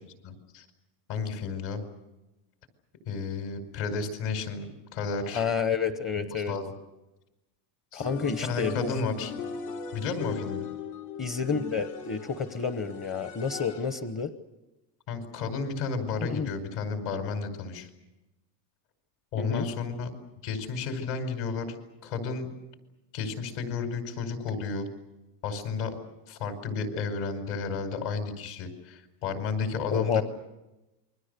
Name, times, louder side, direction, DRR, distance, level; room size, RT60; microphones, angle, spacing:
voice 1, 0.2-0.7 1.1-1.8 3.1-4.7 4.9-5.5 6.2-6.7 7.9-9.3 9.9-10.6 15.1-17.9 19.3-20.1 20.4-21.7 22.0-22.5 23.1-24.9 25.4-26.0 26.3-30.2, left 4 dB, 55° left, 7 dB, 5.2 m, -32 dB
voice 2, 5.3-6.5 7.9-8.9 11.2-14.3 16.3-16.5 19.4-19.7 29.9-30.2, left 6 dB, 25° left, 9 dB, 1.0 m, -29 dB
sound 1, 8.0-14.1, left 5 dB, 80° left, 5.6 m, -39 dB
28.0 x 23.0 x 6.8 m, 0.99 s
cardioid pair, 165°, 50 cm